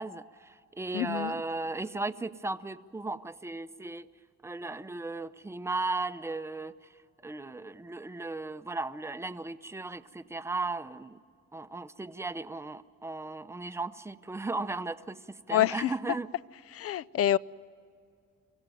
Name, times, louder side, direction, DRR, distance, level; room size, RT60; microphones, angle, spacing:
voice 1, 0.0-4.1 4.4-6.7 7.2-11.2 11.5-16.3, right 3 dB, 10° right, 12 dB, 0.7 m, -36 dB
voice 2, 0.9-1.3 15.5-15.9 16.7-17.4, left 12 dB, 50° left, 21 dB, 0.5 m, -27 dB
24.0 x 15.5 x 9.2 m, 2.3 s
cardioid pair, 90°, 30 cm